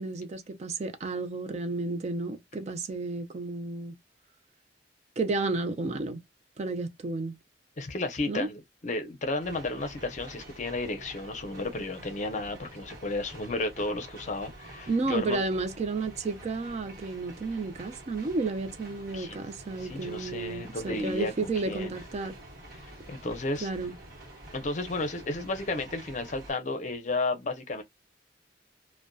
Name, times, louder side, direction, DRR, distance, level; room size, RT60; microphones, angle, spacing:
voice 1, 0.0-3.9 5.2-6.2 6.6-7.4 8.3-8.5 14.9-22.4 23.6-24.0, right 3 dB, 35° right, 0.4 m, -32 dB
voice 2, 7.8-15.4 19.1-19.4 19.8-21.3 21.7-21.9 23.1-23.7 24.5-27.8, left 2 dB, 40° left, 0.6 m, -33 dB
sound 1, 9.4-26.5, right 1 dB, 55° right, 1.0 m, -48 dB
2.6 x 2.1 x 2.2 m
head